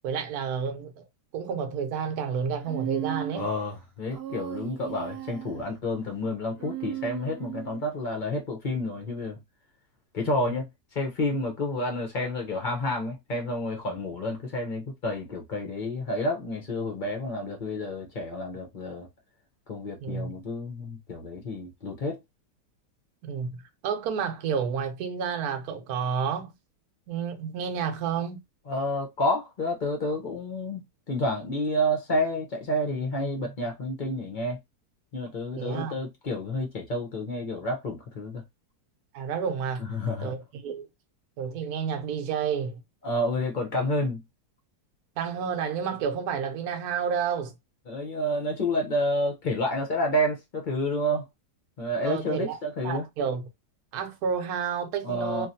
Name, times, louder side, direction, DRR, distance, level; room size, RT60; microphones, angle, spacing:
voice 1, 0.0-1.0 1.3-3.5 20.0-20.3 23.2-26.5 27.1-28.4 35.6-35.9 39.1-39.9 40.2-40.9 41.4-42.8 45.2-47.5 52.0-52.6 52.8-53.5 53.9-55.5, right 7 dB, 65° right, 1.1 m, -30 dB
Human voice, 2.6-3.6 4.1-5.7 6.5-7.8, right 12 dB, 45° right, 0.9 m, -36 dB
voice 2, 3.3-9.4 10.1-10.7 10.9-19.1 19.7-22.2 28.7-34.6 35.1-38.4 39.8-40.3 43.0-44.2 47.9-51.2 51.8-53.1 55.0-55.5, left 1 dB, 45° left, 0.6 m, -29 dB
3.0 x 2.5 x 2.7 m
omnidirectional pair, 1.8 m